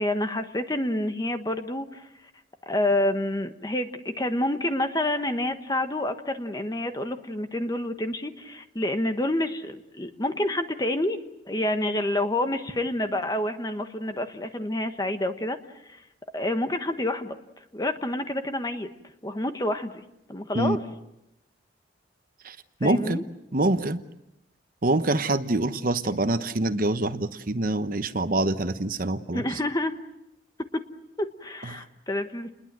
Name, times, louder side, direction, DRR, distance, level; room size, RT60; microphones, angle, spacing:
voice 1, 0.0-2.1 2.7-3.9 4.2-11.2 11.5-15.6 15.9-16.0 16.3-17.4 17.7-18.9 19.2-20.0 20.3-20.8 22.8-23.2 29.3-29.9 31.2-32.5, left 1 dB, 20° left, 8 dB, 1.3 m, -28 dB
voice 2, 22.4-23.2 23.5-24.0 24.8-29.4 31.6-31.8, right 2 dB, 45° right, 10 dB, 1.0 m, -25 dB
29.5 x 21.0 x 7.6 m, 0.86 s
head